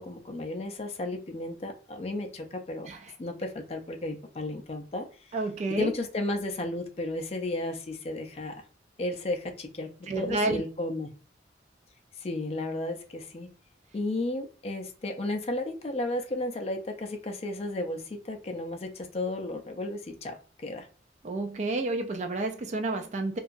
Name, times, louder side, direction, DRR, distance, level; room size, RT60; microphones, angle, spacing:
voice 1, 0.0-2.9 3.2-5.4 5.8-8.6 9.0-9.9 10.2-11.1 12.1-13.5 13.9-20.9, left 2 dB, 35° left, 0.4 m, -33 dB
voice 2, 5.3-5.9 10.1-10.6 21.2-23.4, right 2 dB, 40° right, 0.3 m, -30 dB
2.8 x 2.3 x 2.5 m
head